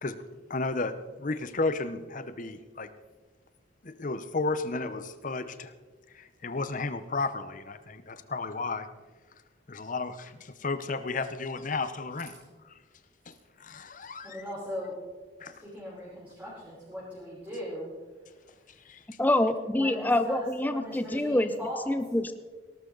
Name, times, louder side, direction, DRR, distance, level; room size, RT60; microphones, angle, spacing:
voice 1, 0.5-0.9 1.2-2.9 3.8-5.7 6.1-8.9 9.7-12.3 13.3-13.4 13.6-14.4 15.4-15.5 18.9-19.0, left 3 dB, 40° left, 11 dB, 0.8 m, -33 dB
voice 2, 14.2-14.9 15.5-17.9 19.7-22.0, equal, 10° right, -10 dB, 5.7 m, -39 dB
voice 3, 19.2-21.5 21.9-22.3, left 1 dB, 10° left, 9 dB, 0.6 m, -26 dB
18.5 x 13.0 x 4.0 m, 1.3 s
head